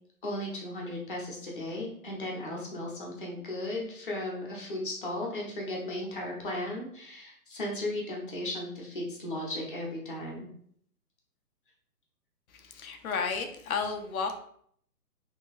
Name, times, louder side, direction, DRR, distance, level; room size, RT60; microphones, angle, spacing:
voice 1, 0.2-10.5, left 1 dB, 35° left, -2 dB, 0.8 m, -36 dB
voice 2, 12.6-14.4, left 5 dB, 65° left, 5 dB, 0.7 m, -32 dB
2.9 x 2.7 x 3.0 m, 0.64 s
hypercardioid pair, 160°, 46 cm